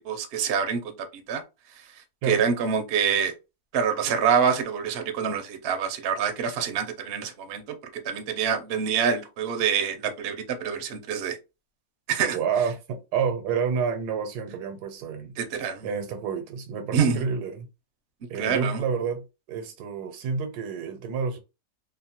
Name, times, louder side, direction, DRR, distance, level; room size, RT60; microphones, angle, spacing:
voice 1, 0.0-1.4 2.3-3.3 3.7-10.4 10.6-11.4 12.1-12.4 15.4-15.9 16.9-17.2 18.4-18.8, right 7 dB, 60° right, 0.6 m, -26 dB
voice 2, 12.3-15.4 15.8-17.7 18.3-21.4, right 6 dB, 85° right, 1.2 m, -29 dB
2.8 x 2.1 x 2.7 m
omnidirectional pair, 1.7 m